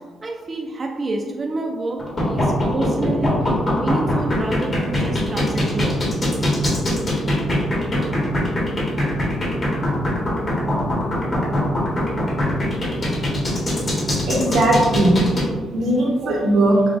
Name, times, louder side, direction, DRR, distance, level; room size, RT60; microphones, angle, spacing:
voice 1, 0.2-3.4 3.8-6.0, right 2 dB, 30° right, 0 dB, 0.5 m, -28 dB
sound 1, 2.0-15.4, left 1 dB, 35° left, 1.4 m, -21 dB
voice 2, 14.3-15.2 15.7-16.8, right 1 dB, 80° right, -2 dB, 1.1 m, -18 dB
6.7 x 2.3 x 2.6 m, 1.5 s
cardioid pair, 90°, 0 cm